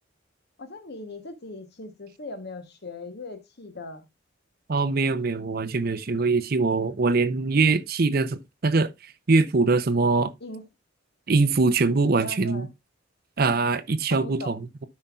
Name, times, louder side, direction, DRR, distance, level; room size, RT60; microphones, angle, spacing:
voice 1, 0.6-4.1 10.4-10.6 11.8-12.7 14.1-14.5, left 2 dB, 55° left, 1.1 m, -39 dB
voice 2, 4.7-10.3 11.3-12.7 13.4-14.9, right 3 dB, 45° right, 0.6 m, -23 dB
12.5 x 5.5 x 2.4 m
head